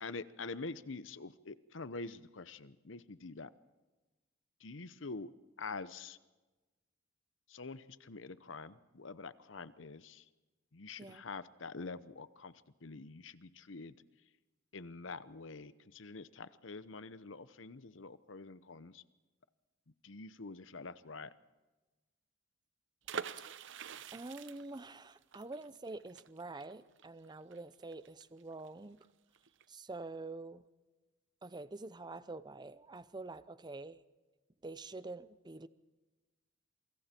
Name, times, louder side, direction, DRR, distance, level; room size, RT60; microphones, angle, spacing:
voice 1, 0.0-3.5 4.6-5.3 5.6-6.2 7.5-10.2 10.7-12.5 12.8-13.9 14.7-19.0 20.0-21.3, left 3 dB, 70° left, 15 dB, 0.9 m, -46 dB
sound 1, 23.0-28.7 29.0-29.1 29.3-29.6, right 7 dB, 70° right, 0.8 m, -46 dB
voice 2, 24.1-29.0 29.7-30.6 31.4-34.0 34.6-35.7, right 2 dB, 20° right, 15 dB, 0.7 m, -46 dB
27.5 x 24.5 x 4.5 m, 1.2 s
head